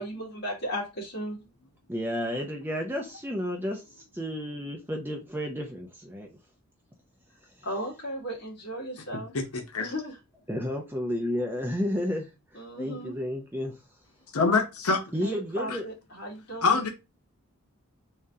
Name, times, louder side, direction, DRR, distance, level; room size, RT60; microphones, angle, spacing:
voice 1, 0.0-1.4 7.6-9.3 9.8-10.2 12.5-13.2 15.2-16.9, equal, 50° left, -3 dB, 1.7 m, -36 dB
voice 2, 1.9-6.4 10.5-13.8 15.1-15.8, equal, 10° right, 1 dB, 0.6 m, -32 dB
voice 3, 14.3-15.0 16.6-16.9, left 4 dB, 85° left, 3 dB, 0.8 m, -23 dB
3.7 x 3.3 x 2.7 m, 0.26 s
head